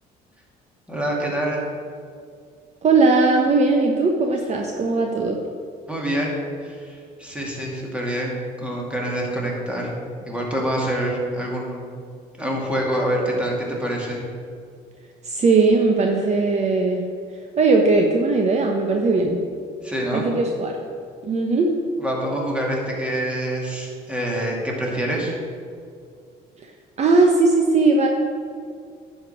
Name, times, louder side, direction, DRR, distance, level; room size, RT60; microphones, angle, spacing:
voice 1, 0.9-1.6 5.9-6.3 6.6-8.3 8.6-9.9 10.2-11.9 12.4-14.2 19.8-20.3 22.0-25.3, right 1 dB, 5° right, -2 dB, 2.4 m, -26 dB
voice 2, 2.8-5.4 15.2-17.0 17.6-19.4 20.1-20.7 21.2-21.7 27.0-28.1, right 3 dB, 40° right, 2 dB, 1.0 m, -18 dB
10.5 x 5.2 x 7.3 m, 2.2 s
cardioid pair, 110°, 17 cm